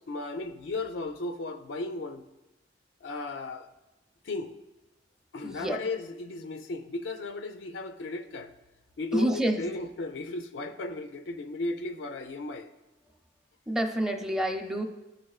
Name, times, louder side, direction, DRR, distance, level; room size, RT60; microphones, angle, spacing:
voice 1, 0.1-2.2 3.0-3.7 4.2-4.6 5.3-8.5 9.0-12.7, left 2 dB, 90° left, 0.5 m, -35 dB
voice 2, 5.4-5.8 9.1-9.6 13.7-14.8, right 1 dB, 5° right, 0.6 m, -28 dB
14.0 x 4.9 x 2.4 m
head